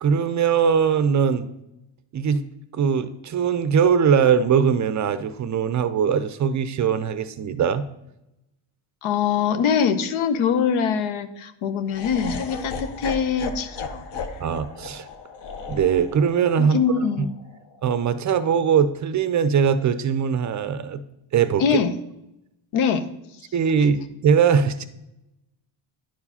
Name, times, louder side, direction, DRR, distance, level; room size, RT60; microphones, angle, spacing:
voice 1, 0.0-1.5 2.1-2.4 2.7-7.9 14.4-15.1 15.7-16.8 17.2-17.3 17.8-21.0 21.3-21.6 23.5-24.8, right 7 dB, 40° right, 13 dB, 0.4 m, -21 dB
voice 2, 9.0-14.0 16.6-17.3 21.6-21.9 22.7-23.1, left 6 dB, 85° left, 10 dB, 0.9 m, -23 dB
Laughter, 11.9-18.0, left 4 dB, 60° left, 1.0 m, -36 dB
10.5 x 4.7 x 5.5 m, 0.89 s
cardioid pair, 145°, 48 cm